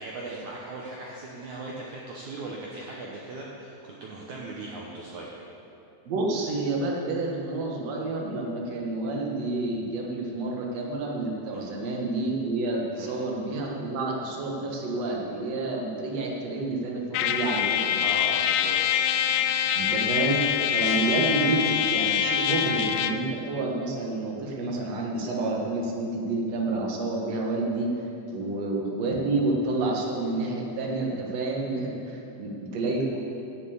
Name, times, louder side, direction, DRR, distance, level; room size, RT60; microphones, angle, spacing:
voice 1, 0.0-5.4 11.5-11.7 12.9-13.1 18.0-19.0 29.1-29.2, right 2 dB, 80° right, -3 dB, 1.7 m, -38 dB
voice 2, 6.1-18.0 19.7-27.9 28.3-33.2, right 2 dB, 60° right, -1 dB, 1.9 m, -29 dB
Trumpet, 17.1-23.3, left 10 dB, 85° left, 2.7 m, -25 dB
11.5 x 7.0 x 8.1 m, 2.8 s
omnidirectional pair, 4.9 m